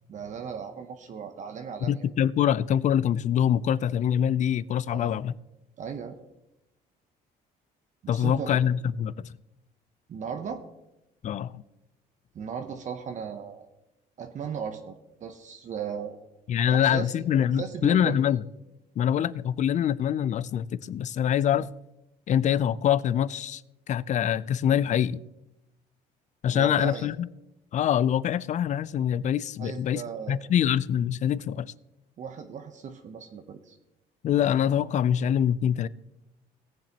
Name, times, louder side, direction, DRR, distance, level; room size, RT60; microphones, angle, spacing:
voice 1, 0.1-1.9 4.9-5.1 5.8-6.2 8.0-8.6 10.1-10.6 12.3-13.7 14.2-16.2 16.7-17.1 17.6-18.2 26.5-27.1 29.6-30.4 32.2-33.8, right 7 dB, 45° right, 0.8 m, -36 dB
voice 2, 1.8-5.3 8.1-9.3 11.2-11.6 16.5-18.4 19.0-21.7 22.3-23.6 23.9-25.2 26.4-27.3 27.7-30.0 30.3-31.7 34.2-35.9, left 9 dB, 45° left, 0.4 m, -24 dB
18.0 x 7.4 x 2.9 m
cardioid pair, 110°, 17 cm